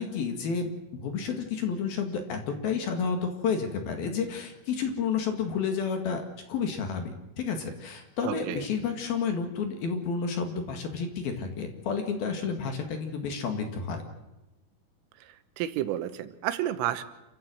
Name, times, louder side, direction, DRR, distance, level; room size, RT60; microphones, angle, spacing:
voice 1, 0.0-14.0, left 5 dB, 60° left, 5 dB, 3.3 m, -31 dB
voice 2, 8.2-8.7 15.2-17.0, right 12 dB, 90° right, 12 dB, 3.7 m, -31 dB
27.5 x 15.0 x 7.8 m, 0.97 s
omnidirectional pair, 5.7 m